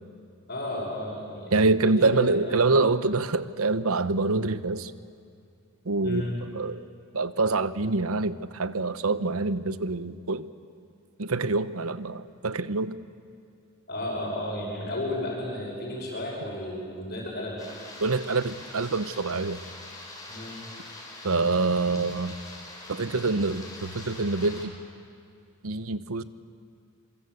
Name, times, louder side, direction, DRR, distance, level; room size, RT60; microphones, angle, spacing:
voice 1, 0.5-2.6 6.0-6.4 13.9-17.6 20.3-20.6, left 1 dB, 50° left, 6.1 m, -33 dB
voice 2, 1.5-4.9 5.9-6.3 6.5-6.8 7.1-10.5 11.2-12.9 18.0-19.6 21.2-22.4 22.9-24.7 25.6-26.2, right 3 dB, 80° right, 1.0 m, -25 dB
sound 1, 17.6-24.6, left 2 dB, 15° left, 5.2 m, -43 dB
27.0 x 25.0 x 8.1 m
head